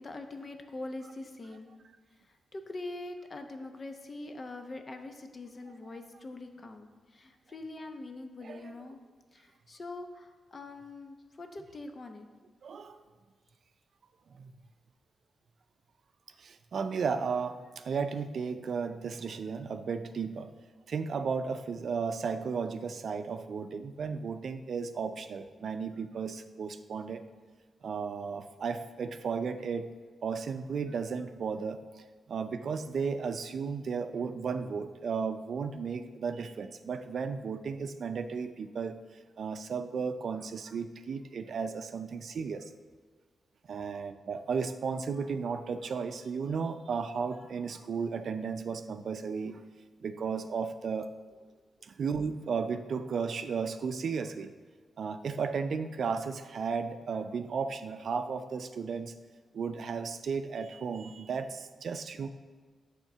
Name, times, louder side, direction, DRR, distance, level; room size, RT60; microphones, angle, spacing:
voice 1, 0.0-1.7 2.2-9.0 9.3-12.3, left 2 dB, 40° left, 6 dB, 0.8 m, -43 dB
voice 2, 8.4-8.7 12.6-13.0 14.3-14.5 16.4-20.5 20.9-27.2 27.8-29.9 30.2-31.8 32.3-39.0 39.4-42.7 43.7-49.6 50.0-51.1 51.8-54.5 55.0-59.1 59.5-62.3, right 5 dB, 65° right, 9 dB, 0.4 m, -34 dB
8.9 x 3.6 x 6.7 m, 1.4 s
cardioid pair, 90°, 0 cm